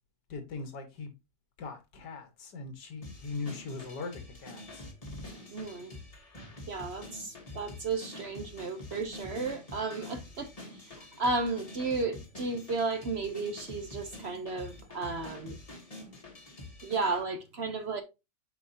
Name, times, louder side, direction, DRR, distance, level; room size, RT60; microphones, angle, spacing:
voice 1, 0.3-1.1 1.6-4.9, left 4 dB, 85° left, 2.1 m, -40 dB
sound 1, 3.0-17.2, left 1 dB, 25° left, 1.2 m, -46 dB
voice 2, 5.5-5.9 6.7-15.6 16.8-18.0, right 3 dB, 50° right, 0.8 m, -34 dB
6.7 x 5.2 x 2.7 m
omnidirectional pair, 1.8 m